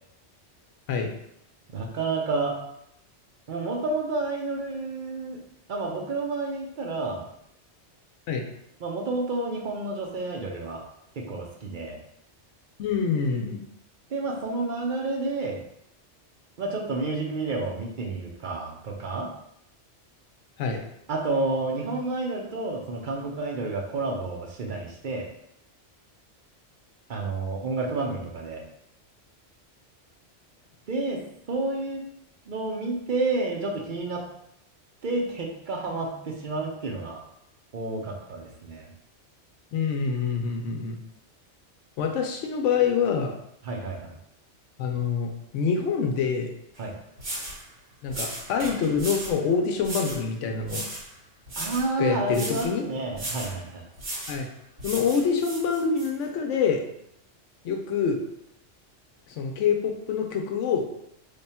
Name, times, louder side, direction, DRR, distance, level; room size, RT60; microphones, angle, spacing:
voice 1, 1.7-2.6 3.5-5.4 5.7-7.2 8.8-10.8 11.2-12.0 14.1-15.6 16.6-19.3 21.1-25.3 27.1-28.6 30.9-31.2 31.5-32.0 32.5-34.2 35.0-37.2 37.7-38.9 43.6-44.2 46.8-47.0 51.6-53.8, right 3 dB, 50° right, 0 dB, 0.7 m, -30 dB
voice 2, 12.8-13.6 20.6-20.8 39.7-41.0 42.0-43.4 44.8-46.5 48.0-50.8 52.0-52.8 54.3-54.5 54.8-56.8 57.6-58.2 59.3-60.8, left 6 dB, 80° left, 2 dB, 0.9 m, -26 dB
sound 1, 46.7-46.8 47.2-47.6 48.1-49.4 49.8-50.2 50.6-51.1 51.5-51.9 52.3-52.7 53.1-53.6 54.0-54.4 54.8-56.1, right 1 dB, 85° right, 1.8 m, -35 dB
3.3 x 2.2 x 4.2 m, 0.76 s
omnidirectional pair, 1.2 m